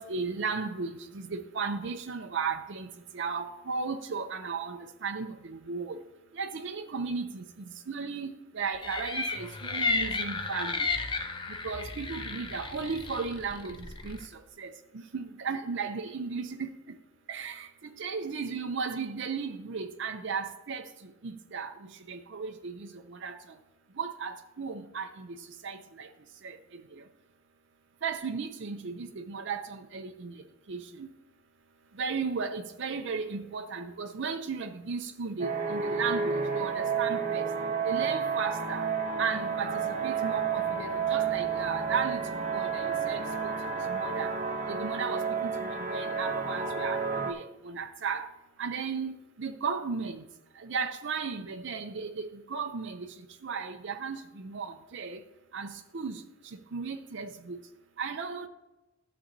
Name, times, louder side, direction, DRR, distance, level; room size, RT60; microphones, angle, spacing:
voice 1, 0.0-2.9 3.1-6.0 6.4-7.4 7.9-8.3 8.5-10.9 11.6-13.8 14.0-14.2 14.6-14.7 15.1-16.7 17.3-17.7 18.0-20.8 21.2-21.7 22.1-22.9 23.2-23.3 24.0-25.4 25.6-26.1 26.4-26.6 28.0-30.3 30.7-31.1 32.0-37.4 37.8-38.8 39.2-42.2 42.5-43.2 43.9-44.3 44.7-45.5 45.8-48.3 48.6-49.1 49.4-50.2 50.6-53.1 53.4-55.2 55.5-56.2 56.7-57.6 58.0-58.5, right 5 dB, 60° right, 0.5 m, -35 dB
sound 1, 8.8-14.3, left 4 dB, 25° left, 0.6 m, -33 dB
sound 2, 35.4-47.3, right 6 dB, 35° right, 0.8 m, -31 dB
13.0 x 6.9 x 2.7 m
head